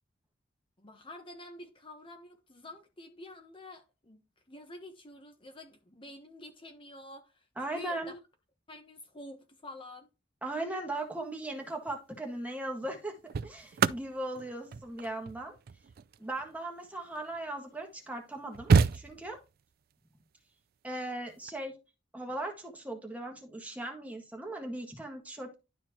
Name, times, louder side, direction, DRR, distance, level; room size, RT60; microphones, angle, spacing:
voice 1, 0.8-8.2 8.7-10.1, left 1 dB, 25° left, 1.2 m, -49 dB
voice 2, 7.6-8.2 10.4-13.1 13.4-15.6 16.2-19.4 20.8-21.8 22.1-25.5, right 1 dB, 10° right, 1.7 m, -38 dB
sound 1, 11.7-12.0 12.9-17.5 18.1-18.2 18.3-19.6 21.3-21.5, right 5 dB, 50° right, 0.4 m, -30 dB
12.0 x 4.4 x 3.0 m
head